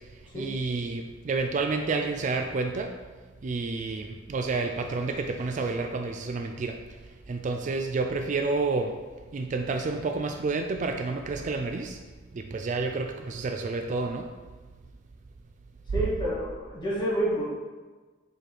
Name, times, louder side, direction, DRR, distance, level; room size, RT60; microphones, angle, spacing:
voice 1, 0.3-2.9 3.4-6.8 7.3-8.9 9.3-12.0 12.3-14.3, right 3 dB, 40° right, 5 dB, 0.3 m, -29 dB
voice 2, 15.9-17.4, right 1 dB, 25° left, -8 dB, 1.8 m, -28 dB
4.7 x 4.2 x 4.8 m, 1.3 s
head